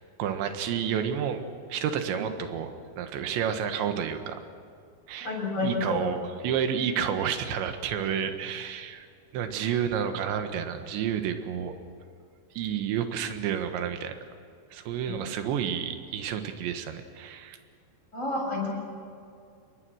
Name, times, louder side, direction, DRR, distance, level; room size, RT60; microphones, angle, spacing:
voice 1, 0.2-1.4 1.7-4.4 5.1-5.3 5.6-9.1 9.3-11.7 12.6-14.2 14.7-17.6, right 8 dB, 70° right, 7 dB, 3.5 m, -30 dB
voice 2, 5.2-6.0 15.1-15.2 18.1-18.7, left 2 dB, 15° left, -2 dB, 7.3 m, -30 dB
28.0 x 21.5 x 6.4 m, 2.4 s
omnidirectional pair, 5.8 m